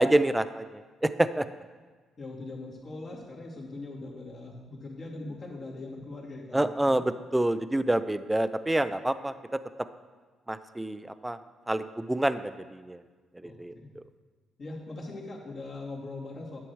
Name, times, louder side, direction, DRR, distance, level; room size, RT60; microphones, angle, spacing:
voice 1, 0.0-1.5 6.5-9.6 10.5-11.4 11.7-13.0 13.3-14.0, right 1 dB, 10° right, 12 dB, 0.4 m, -27 dB
voice 2, 2.2-7.0 13.4-13.9 14.6-16.6, left 2 dB, 50° left, -4 dB, 2.5 m, -41 dB
10.0 x 6.9 x 4.6 m, 1.4 s
cardioid pair, 90°, 0 cm